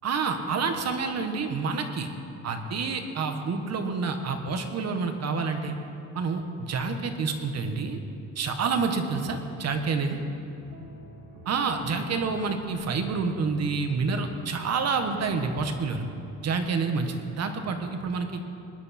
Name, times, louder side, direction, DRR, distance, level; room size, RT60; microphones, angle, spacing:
voice 1, 0.0-2.1 2.4-5.7 6.1-8.0 8.3-10.2 11.5-16.1 16.4-18.4, right 4 dB, 50° right, 6 dB, 1.3 m, -28 dB
sound 1, 8.9-15.6, right 1 dB, 80° right, 2.4 m, -48 dB
20.5 x 10.5 x 4.3 m, 2.8 s
cardioid pair, 135°, 33 cm